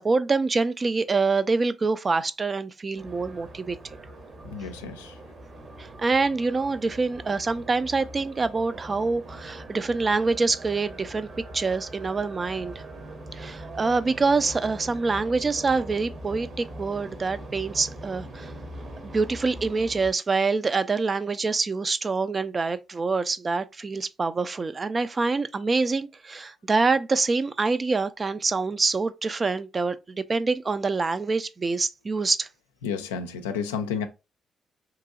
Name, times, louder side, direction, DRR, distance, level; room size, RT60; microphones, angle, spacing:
voice 1, 0.0-3.8 5.8-11.3 11.5-12.7 13.3-18.5 19.1-32.5, right 4 dB, 35° right, 0.3 m, -25 dB
sound 1, 3.0-20.1, right 1 dB, 55° right, 0.9 m, -42 dB
voice 2, 4.5-5.2 32.8-34.0, left 6 dB, 90° left, 0.3 m, -31 dB
2.9 x 2.6 x 2.4 m
hypercardioid pair, 45°, 0 cm